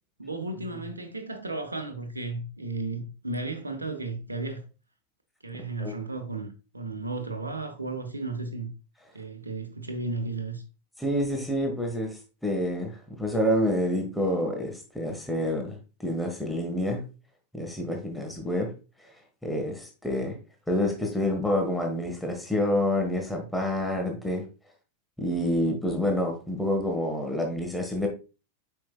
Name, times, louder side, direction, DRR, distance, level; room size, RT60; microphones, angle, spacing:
voice 1, 0.2-4.6 5.4-8.7 9.1-10.6, right 3 dB, 80° right, 1.0 m, -34 dB
voice 2, 11.0-17.0 17.5-18.7 19.4-20.4 20.7-24.4 25.2-28.1, left 1 dB, 5° left, 1.3 m, -28 dB
7.5 x 5.6 x 2.2 m
figure-of-eight pair, 90°, 0 cm